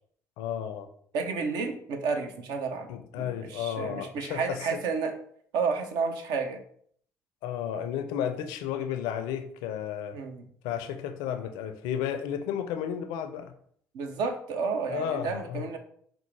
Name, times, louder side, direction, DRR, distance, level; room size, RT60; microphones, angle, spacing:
voice 1, 0.4-0.9 2.9-4.8 7.4-10.2 10.6-13.5 14.9-15.7, left 9 dB, 70° left, 8 dB, 0.4 m, -33 dB
voice 2, 1.1-2.9 3.2-5.1 5.5-6.6 10.1-10.5 13.9-15.8, right 5 dB, 65° right, 6 dB, 0.5 m, -31 dB
4.3 x 2.0 x 3.2 m, 0.62 s
hypercardioid pair, 55°, 8 cm